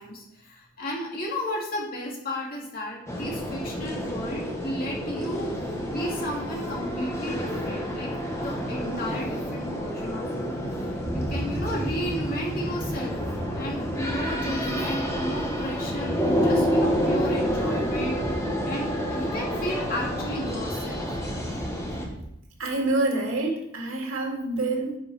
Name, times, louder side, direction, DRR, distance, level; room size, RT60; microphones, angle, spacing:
voice 1, 0.0-5.5 5.8-13.2 13.5-21.0, equal, 45° left, -3 dB, 2.4 m, -34 dB
sound 1, 3.1-22.1, equal, 15° left, 1.3 m, -29 dB
sound 2, 11.0-22.3, right 1 dB, 10° right, 0.8 m, -36 dB
voice 2, 22.6-25.0, right 2 dB, 85° right, 1 dB, 2.1 m, -27 dB
9.9 x 6.7 x 4.2 m, 0.81 s
head